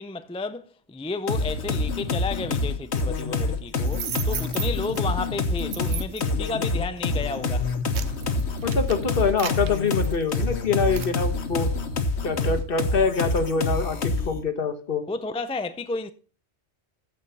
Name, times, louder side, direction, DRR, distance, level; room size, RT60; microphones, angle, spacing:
voice 1, 0.0-7.7 15.1-16.1, left 3 dB, 10° left, 0.4 m, -32 dB
sound 1, 1.3-14.4, left 3 dB, 80° left, 1.3 m, -27 dB
sound 2, 3.8-5.0 5.6-6.3 7.0-7.2 7.6-10.5 10.9-11.2, right 9 dB, 85° right, 1.0 m, -35 dB
voice 2, 8.6-11.7 12.2-15.0, left 4 dB, 55° left, 1.3 m, -25 dB
14.5 x 5.1 x 5.6 m
omnidirectional pair, 1.1 m